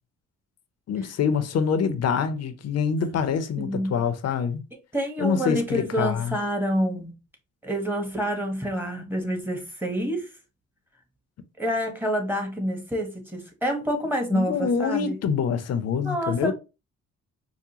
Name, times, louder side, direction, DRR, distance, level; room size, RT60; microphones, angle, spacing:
voice 1, 0.9-4.6 5.2-6.4 14.3-16.5, left 6 dB, 55° left, 0.6 m, -25 dB
voice 2, 3.6-4.0 4.9-7.1 7.6-10.3 11.6-15.2 16.0-16.5, equal, 5° right, 1.2 m, -28 dB
4.8 x 2.1 x 2.8 m
cardioid pair, 90°, 30 cm